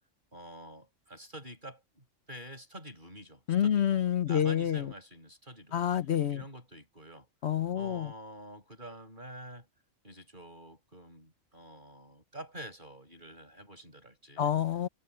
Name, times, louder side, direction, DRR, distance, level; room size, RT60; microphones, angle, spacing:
voice 1, 0.3-5.8 6.3-7.3 7.7-9.7 10.0-14.5, right 1 dB, 35° right, 7.8 m, -48 dB
voice 2, 3.5-4.9 5.7-6.4 7.4-8.1 14.4-14.9, left 10 dB, 60° left, 1.0 m, -28 dB
omnidirectional pair, 1.4 m